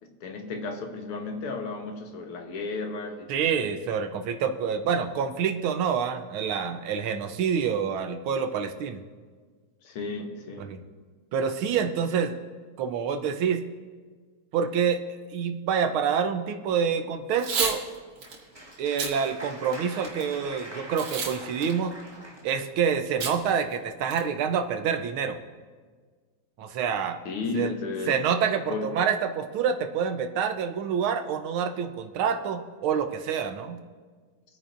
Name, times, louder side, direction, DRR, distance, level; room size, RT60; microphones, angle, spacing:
voice 1, 0.0-3.3 3.6-3.9 9.8-10.8 27.3-28.2 28.7-29.0, left 3 dB, 85° left, 4 dB, 2.1 m, -34 dB
voice 2, 3.3-9.0 10.6-10.8 11.3-12.4 12.8-13.6 14.5-15.0 15.3-17.8 18.8-22.0 22.4-25.4 26.6-27.2 27.5-27.7 28.1-33.8, right 7 dB, 75° right, 7 dB, 1.6 m, -27 dB
Packing tape duct tape / Tearing, 17.3-17.8 18.2-18.4 18.9-19.1 19.6-20.2 21.0-21.4 21.6-21.7 23.2-23.4 23.7-23.8 24.1-24.4, right 4 dB, 90° right, 2.4 m, -29 dB
Applause, 17.9-22.7, right 1 dB, 15° right, 1.5 m, -43 dB
27.0 x 9.3 x 2.6 m, 1.5 s
omnidirectional pair, 2.4 m